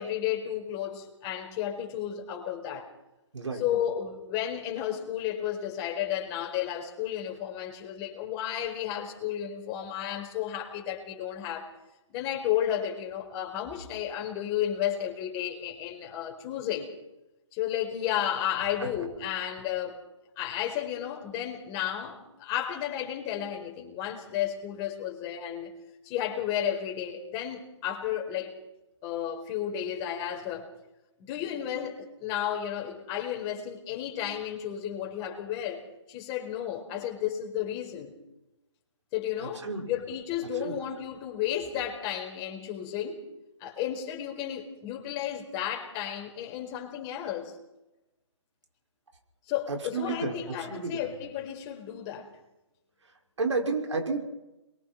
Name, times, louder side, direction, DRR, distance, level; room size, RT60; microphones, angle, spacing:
voice 1, 0.0-2.9 3.5-11.7 12.1-16.9 17.5-20.0 20.4-25.7 26.0-28.5 29.0-30.7 31.3-35.8 36.1-38.1 39.1-43.2 43.6-47.6 49.5-52.3, left 10 dB, 25° left, 4.7 m, -33 dB
voice 2, 49.9-50.3 50.7-50.9 53.4-54.2, right 4 dB, 75° right, 5.6 m, -30 dB
29.0 x 23.0 x 4.4 m
figure-of-eight pair, 140°, 15 cm